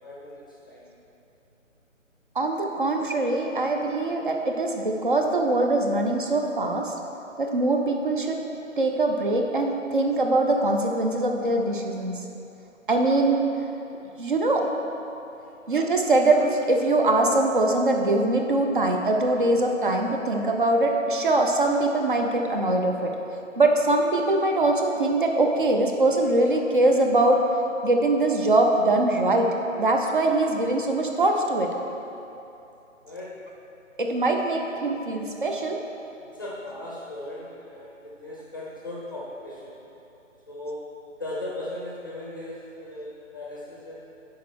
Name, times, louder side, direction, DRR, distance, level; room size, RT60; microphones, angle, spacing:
voice 1, 0.0-0.8 15.4-15.5 33.0-33.3 36.2-39.8 40.5-40.8 41.2-44.0, left 1 dB, 15° left, -6 dB, 0.6 m, -37 dB
voice 2, 2.4-6.9 7.4-8.4 8.8-12.2 12.9-13.4 14.2-14.7 15.7-23.1 23.6-27.4 27.8-31.7 34.0-35.8, right 2 dB, 40° right, 2 dB, 0.6 m, -22 dB
6.4 x 4.7 x 6.2 m, 2.9 s
figure-of-eight pair, 150°, 39 cm